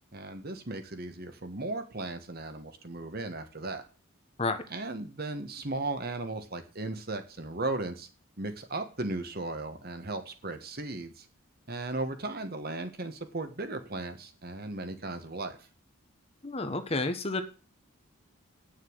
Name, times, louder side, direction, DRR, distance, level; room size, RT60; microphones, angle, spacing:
voice 1, 0.1-3.8 4.7-8.1 8.4-11.3 11.7-15.6, right 2 dB, 45° right, 7 dB, 1.5 m, -36 dB
voice 2, 16.4-17.4, left 3 dB, 30° left, 9 dB, 1.0 m, -30 dB
9.4 x 6.5 x 7.9 m, 0.35 s
head